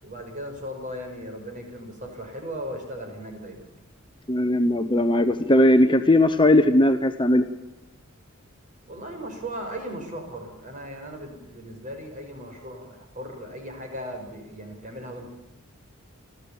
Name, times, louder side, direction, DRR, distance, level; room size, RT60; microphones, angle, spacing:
voice 1, 0.0-3.7 8.9-15.3, equal, 35° right, 3 dB, 5.8 m, -37 dB
voice 2, 4.3-7.5, left 1 dB, 25° left, 8 dB, 0.9 m, -18 dB
29.5 x 13.5 x 8.7 m, 1.0 s
head